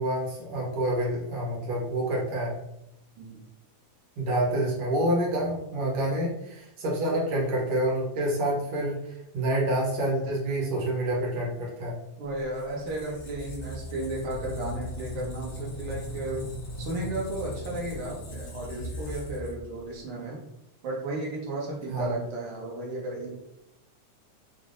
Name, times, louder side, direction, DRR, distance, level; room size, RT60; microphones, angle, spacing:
voice 1, 0.0-2.6 4.2-8.9 9.3-12.0 21.9-22.1, right 1 dB, 70° right, -4 dB, 1.4 m, -27 dB
voice 2, 12.2-16.5 16.8-20.4 20.8-23.3, right 2 dB, 85° right, -3 dB, 1.1 m, -34 dB
Squeak, 12.4-20.0, left 1 dB, 65° left, 1.3 m, -38 dB
5.3 x 2.0 x 2.5 m, 0.83 s
omnidirectional pair, 3.5 m